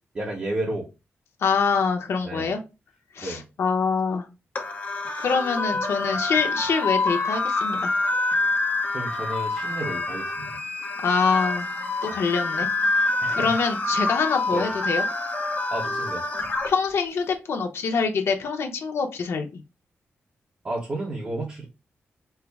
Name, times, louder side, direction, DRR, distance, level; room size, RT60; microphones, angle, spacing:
voice 1, 0.1-0.9 2.2-2.5 3.2-3.4 8.9-10.6 13.2-13.6 14.5-14.6 15.7-16.2 20.6-21.6, right 1 dB, 30° right, -2 dB, 0.8 m, -32 dB
voice 2, 1.4-2.6 3.1-4.3 5.2-7.9 11.0-11.7 12.0-12.7 13.0-15.0 16.7-19.5, left 5 dB, 80° left, 4 dB, 0.8 m, -25 dB
sound 1, 4.6-16.7, left 2 dB, 40° left, 0.9 m, -26 dB
4.5 x 2.0 x 3.4 m, 0.27 s
wide cardioid pair, 175°, 4 cm